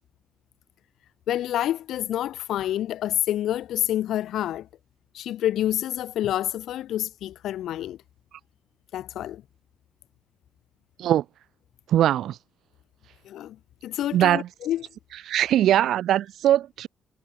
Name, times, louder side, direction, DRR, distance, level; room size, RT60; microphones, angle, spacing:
voice 1, 1.3-4.7 5.1-8.0 8.9-9.4 13.2-13.6 13.8-14.9, left 12 dB, 75° left, 4.2 m, -28 dB
voice 2, 11.9-12.4 14.1-14.5 15.3-16.9, right 12 dB, 75° right, 6.2 m, -21 dB
cardioid pair, 90°, 0 cm